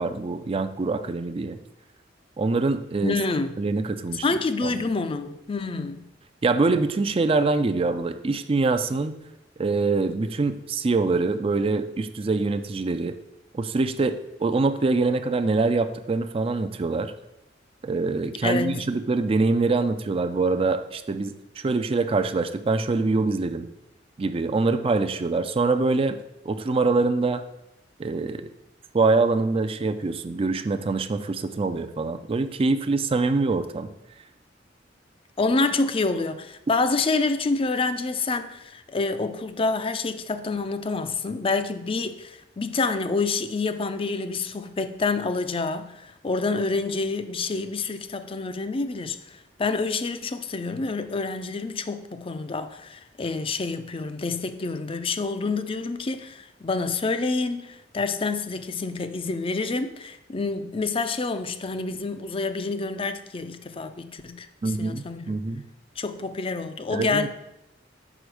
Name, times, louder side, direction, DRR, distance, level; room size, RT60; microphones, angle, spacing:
voice 1, 0.0-1.6 2.4-3.2 3.6-4.2 4.6-4.7 6.4-9.2 9.6-13.1 13.5-17.1 17.8-23.7 24.2-26.2 26.5-27.4 28.0-28.5 28.9-33.9 64.6-65.6 66.9-67.3, right 3 dB, 30° right, 0.4 m, -24 dB
voice 2, 3.0-3.6 4.2-6.0 18.4-18.9 35.4-65.4 66.0-67.3, left 3 dB, 30° left, 0.5 m, -28 dB
5.2 x 4.9 x 6.2 m
head